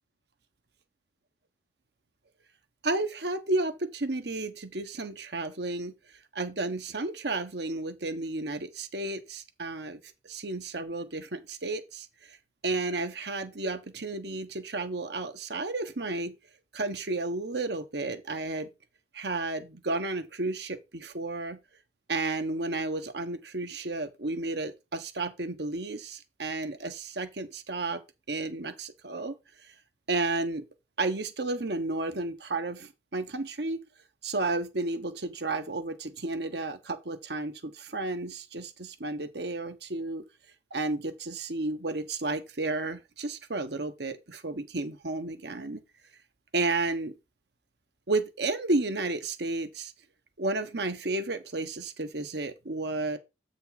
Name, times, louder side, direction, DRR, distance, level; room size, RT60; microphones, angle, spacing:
voice 1, 2.8-5.9 6.3-10.0 10.2-12.1 12.6-16.3 16.7-18.7 19.1-21.6 22.1-28.0 28.3-29.3 30.1-30.6 31.0-33.8 34.2-40.3 40.7-45.8 46.5-47.1 48.1-49.9 50.4-53.2, right 2 dB, 65° right, 1.2 m, -32 dB
8.3 x 5.2 x 4.1 m
head